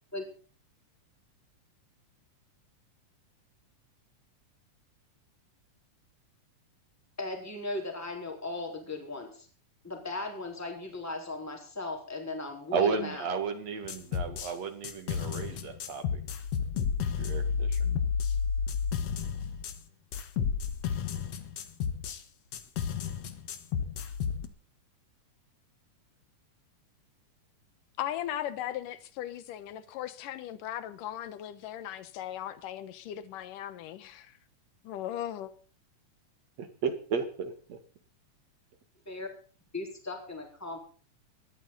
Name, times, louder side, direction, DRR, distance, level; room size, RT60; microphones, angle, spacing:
voice 1, 7.2-9.5 9.8-13.3 39.1-39.3 39.7-40.9, left 2 dB, 5° left, 4.0 m, -37 dB
voice 2, 12.7-16.2 17.2-17.9 36.6-37.8, right 5 dB, 55° right, 3.0 m, -33 dB
sound 1, 13.9-14.5 14.8-19.8 20.1-22.2 22.5-24.5, left 6 dB, 55° left, 2.2 m, -31 dB
voice 3, 28.0-34.4 34.8-35.5, left 12 dB, 80° left, 2.8 m, -38 dB
20.0 x 13.5 x 4.1 m
omnidirectional pair, 3.8 m